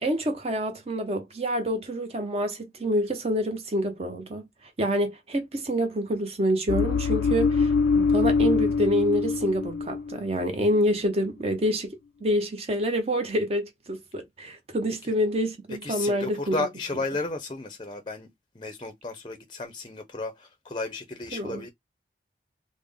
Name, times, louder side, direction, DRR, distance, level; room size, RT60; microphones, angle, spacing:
voice 1, 0.0-4.5 4.8-12.0 12.2-16.5 21.3-21.6, equal, 35° right, 0.7 m, -27 dB
sound 1, 6.7-10.2 10.4-10.8, left 4 dB, 90° left, 0.3 m, -24 dB
voice 2, 15.8-18.3 18.5-21.7, left 3 dB, 25° left, 0.5 m, -33 dB
3.5 x 2.1 x 3.4 m
head